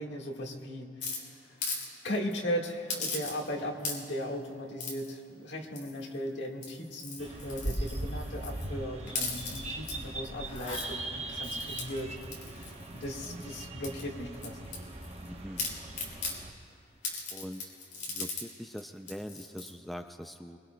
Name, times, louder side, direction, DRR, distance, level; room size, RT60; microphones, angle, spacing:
voice 1, 0.0-1.5 2.0-12.1 12.5-14.7, equal, 75° left, 0 dB, 1.7 m, -37 dB
sound 1, 1.0-1.9 2.1-2.3 2.9-3.5 3.8-4.2 4.8-5.1 5.7-6.1 6.5-8.7 9.1-9.9 10.4-10.9 11.4-13.4 13.8-15.3 15.6-16.4 17.0-18.5 18.8-18.9 19.1-19.7, left 4 dB, 45° left, 2.9 m, -38 dB
sound 2, 7.2-16.5, right 1 dB, 35° right, 0.9 m, -39 dB
voice 2, 15.3-15.8 17.3-17.7 18.1-20.6, equal, ahead, 5 dB, 0.3 m, -42 dB
23.0 x 22.5 x 2.2 m, 2.3 s
head